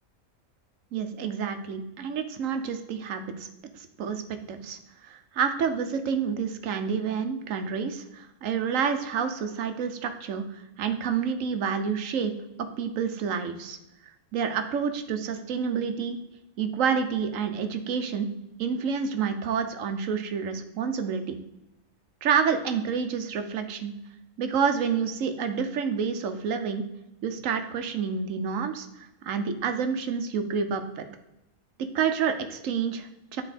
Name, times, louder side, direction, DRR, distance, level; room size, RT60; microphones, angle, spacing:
voice 1, 0.9-3.5 3.7-12.3 12.8-13.8 14.3-16.2 16.6-18.3 18.6-21.4 22.2-23.9 24.4-26.8 27.2-31.0 31.9-33.4, right 6 dB, 75° right, 8 dB, 1.1 m, -29 dB
9.1 x 4.3 x 4.1 m, 0.91 s
omnidirectional pair, 1.4 m